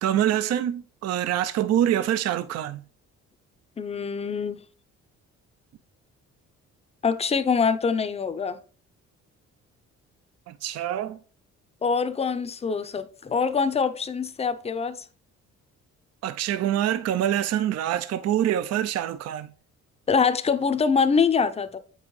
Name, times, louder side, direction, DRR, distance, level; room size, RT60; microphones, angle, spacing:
voice 1, 0.0-2.8 10.5-11.2 16.2-19.5, right 11 dB, 55° right, 0.4 m, -25 dB
voice 2, 3.8-4.6 7.0-8.6 11.8-15.0 20.1-21.8, left 5 dB, 20° left, 0.5 m, -24 dB
7.8 x 5.4 x 3.1 m
cardioid pair, 90°, 30 cm